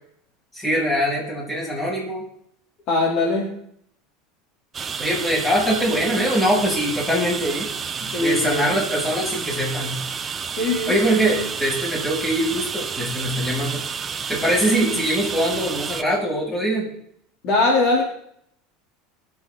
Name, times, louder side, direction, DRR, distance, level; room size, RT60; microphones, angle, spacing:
voice 1, 0.5-2.2 5.0-7.7 8.0-10.0 10.9-13.8 14.3-16.9, equal, 15° left, -4 dB, 7.7 m, -23 dB
voice 2, 2.9-3.6 8.1-8.7 10.6-10.9 17.4-18.0, left 2 dB, 50° left, -1 dB, 3.9 m, -20 dB
sound 1, 4.7-16.0, right 6 dB, 25° right, 0.9 m, -30 dB
24.5 x 8.4 x 4.2 m, 0.69 s
supercardioid pair, 130°, 0 cm